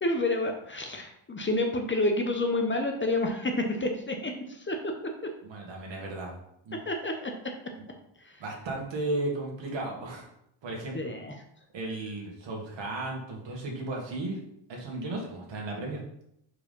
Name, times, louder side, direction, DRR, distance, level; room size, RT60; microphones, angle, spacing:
voice 1, 0.0-5.3 6.7-7.5 8.2-8.4 10.9-11.4, left 2 dB, 25° left, 4 dB, 0.9 m, -29 dB
voice 2, 5.4-6.4 6.7-6.8 7.8-7.9 8.4-10.3 10.6-11.0 11.7-14.4 14.7-16.0, right 2 dB, 65° right, -1 dB, 2.2 m, -34 dB
4.9 x 4.8 x 5.4 m, 0.76 s
cardioid pair, 115°, 48 cm